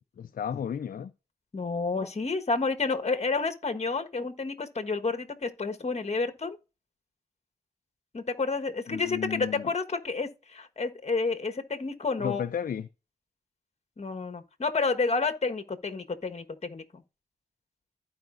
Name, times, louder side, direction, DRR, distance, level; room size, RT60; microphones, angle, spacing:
voice 1, 0.2-1.1 8.9-9.7 12.2-12.9, left 8 dB, 60° left, 0.5 m, -33 dB
voice 2, 1.5-6.6 8.1-12.5 14.0-17.0, left 4 dB, 40° left, 1.4 m, -30 dB
15.0 x 5.0 x 2.6 m
cardioid pair, 50°, 16 cm